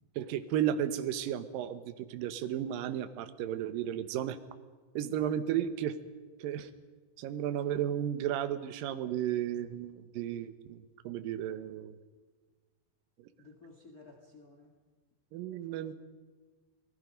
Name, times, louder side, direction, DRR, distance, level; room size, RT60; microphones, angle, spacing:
voice 1, 0.2-4.4 5.0-6.0 6.4-6.7 7.2-12.0 13.2-13.3 15.3-15.9, right 10 dB, 70° right, 10 dB, 2.4 m, -34 dB
voice 2, 13.4-14.7 15.7-15.9, left 3 dB, 75° left, 2 dB, 0.8 m, -55 dB
29.5 x 20.0 x 5.3 m, 1.4 s
omnidirectional pair, 5.1 m